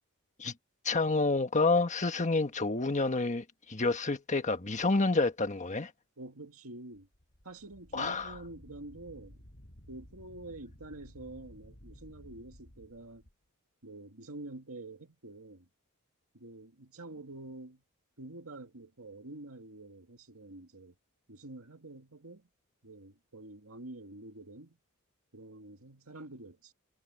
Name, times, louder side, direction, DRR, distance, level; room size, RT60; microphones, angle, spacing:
voice 1, 0.8-5.9 7.9-8.3, left 3 dB, 35° left, 1.5 m, -29 dB
voice 2, 6.2-7.1 7.4-9.5 9.9-13.2 13.8-15.7 16.3-17.8 18.2-21.0 21.3-22.5 22.8-24.8 25.3-26.7, right 2 dB, 70° right, 2.3 m, -47 dB
Wind, 6.9-13.3, equal, 50° left, 5.1 m, -55 dB
head